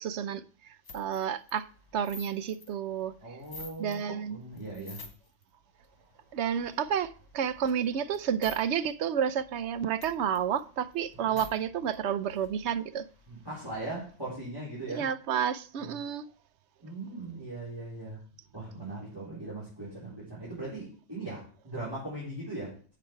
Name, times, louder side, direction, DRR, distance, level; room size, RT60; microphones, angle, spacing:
voice 1, 0.0-1.6 1.9-3.1 3.8-4.4 6.3-13.1 14.9-16.3, right 8 dB, 75° right, 0.9 m, -30 dB
sound 1, 0.8-4.0 4.4-5.4 5.8-8.6 8.9-9.0 9.3-11.5 11.9-12.0 12.2-14.2, left 4 dB, 65° left, 1.9 m, -50 dB
voice 2, 3.2-5.0 11.2-11.4 13.3-15.1 15.8-16.0 16.8-18.2 18.5-22.9, right 2 dB, 20° right, 4.0 m, -39 dB
8.0 x 6.0 x 4.5 m
omnidirectional pair, 1.2 m